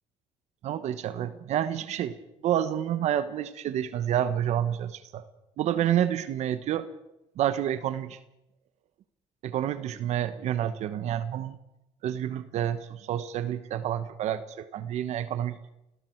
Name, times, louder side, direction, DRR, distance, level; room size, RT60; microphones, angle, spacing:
voice 1, 0.6-2.2 2.4-5.3 5.6-6.9 7.4-8.2 9.4-11.6 12.0-15.6, right 10 dB, 65° right, 12 dB, 1.2 m, -29 dB
29.0 x 20.0 x 4.7 m, 0.89 s
cardioid pair, 110°, 13 cm